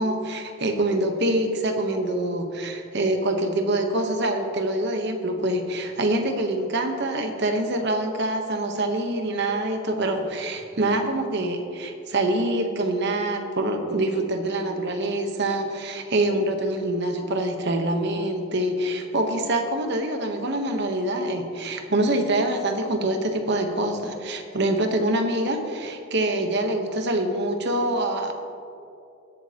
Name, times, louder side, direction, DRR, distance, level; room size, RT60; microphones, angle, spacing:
voice 1, 0.0-28.3, right 1 dB, 50° right, 5 dB, 1.0 m, -25 dB
21.0 x 7.4 x 2.9 m, 2.6 s
head